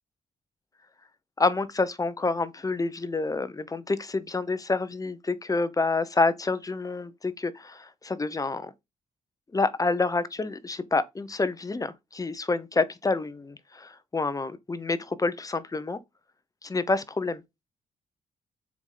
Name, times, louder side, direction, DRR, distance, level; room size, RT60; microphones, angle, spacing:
voice 1, 1.4-8.7 9.5-16.0 16.6-17.4, left 3 dB, 25° left, 0.9 m, -28 dB
7.1 x 4.9 x 3.9 m
cardioid pair, 80°, 14 cm